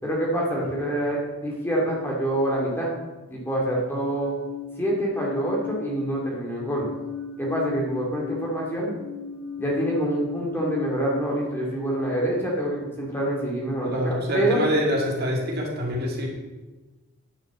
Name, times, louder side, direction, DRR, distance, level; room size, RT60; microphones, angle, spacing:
voice 1, 0.0-2.9 3.3-4.3 4.8-6.9 7.4-8.9 9.6-14.6, right 1 dB, 10° left, -3 dB, 2.4 m, -26 dB
sound 1, 3.9-6.2 6.6-11.3, left 6 dB, 65° left, 1.7 m, -36 dB
voice 2, 13.8-16.3, equal, 45° right, -1 dB, 2.4 m, -26 dB
10.0 x 6.3 x 7.4 m, 1.2 s
head